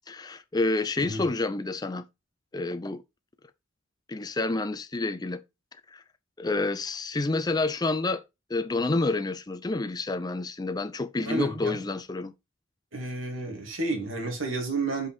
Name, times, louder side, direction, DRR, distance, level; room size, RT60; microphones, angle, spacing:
voice 1, 0.1-2.1 2.5-3.0 4.1-5.4 5.9-6.0 6.4-8.2 8.5-12.3, left 2 dB, 20° left, 0.4 m, -29 dB
voice 2, 11.3-11.8 12.9-15.1, right 3 dB, 70° right, 2.4 m, -31 dB
5.3 x 5.1 x 4.3 m
head